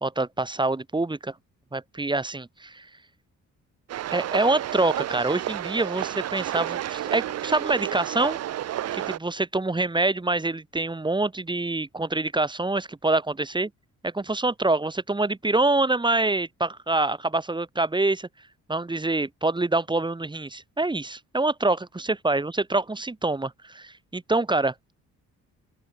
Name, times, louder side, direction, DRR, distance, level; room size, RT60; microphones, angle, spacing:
voice 1, 0.0-1.3 1.7-2.9 4.1-8.4 8.9-13.7 14.0-18.3 18.7-24.7, right 2 dB, 15° right, 1.9 m, -25 dB
sound 1, 3.9-9.2, right 12 dB, 55° right, 0.7 m, -31 dB
open air
cardioid pair, 90°, 30 cm